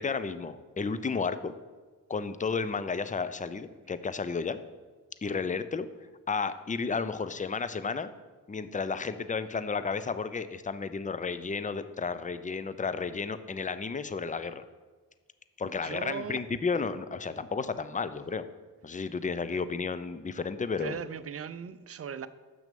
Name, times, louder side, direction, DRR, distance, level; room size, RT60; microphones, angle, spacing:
voice 1, 0.0-1.5 2.1-4.6 5.2-5.9 6.3-8.1 8.5-14.6 15.6-18.5 18.8-21.0, left 5 dB, 20° left, 0.6 m, -32 dB
voice 2, 15.6-16.4 19.5-19.6 20.8-22.3, right 7 dB, 35° right, 0.6 m, -38 dB
7.7 x 6.0 x 5.2 m
supercardioid pair, 45°, 39 cm